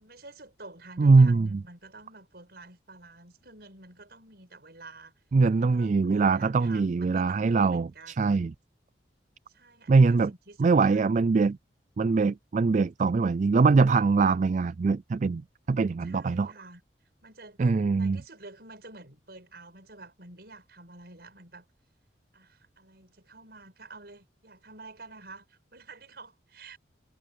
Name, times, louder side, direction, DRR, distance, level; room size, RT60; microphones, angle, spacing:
voice 1, 0.0-5.1 5.5-8.3 9.5-11.1 16.0-16.8 17.2-17.6 17.9-21.7 22.3-26.8, right 2 dB, 60° right, 6.9 m, -49 dB
voice 2, 1.0-1.6 5.3-8.5 9.9-10.3 10.6-11.6 12.0-15.4 15.7-16.5 17.6-18.2, right 4 dB, 40° right, 0.3 m, -22 dB
head